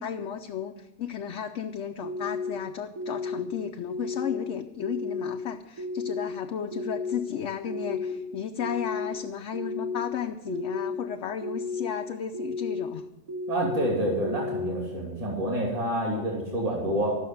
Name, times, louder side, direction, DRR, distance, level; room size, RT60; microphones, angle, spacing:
voice 1, 0.0-13.1, left 8 dB, 65° left, 5 dB, 0.9 m, -34 dB
sound 1, 2.0-2.5 3.0-3.4 3.9-4.4 4.8-5.3 5.8-6.3 6.7-7.2 7.6-8.1 8.6-9.1 9.5-10.0 10.5-10.9 11.4-11.9 12.3-12.8 13.3-13.8 14.2-14.7, left 3 dB, 70° right, 2.9 m, -32 dB
voice 2, 13.5-17.2, right 1 dB, 25° right, -2 dB, 2.9 m, -28 dB
14.5 x 6.3 x 9.2 m, 1.0 s
omnidirectional pair, 1.5 m